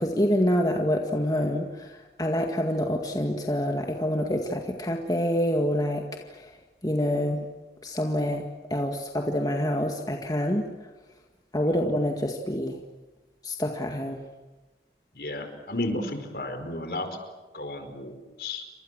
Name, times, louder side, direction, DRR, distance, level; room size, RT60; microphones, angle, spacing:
voice 1, 0.0-6.5 6.8-7.4 7.8-8.4 8.7-10.6 11.5-12.8 13.4-14.2, equal, 20° left, 2 dB, 1.9 m, -26 dB
voice 2, 15.1-17.1 17.5-18.6, left 1 dB, 55° left, 7 dB, 4.9 m, -33 dB
29.0 x 25.5 x 7.6 m, 1.2 s
head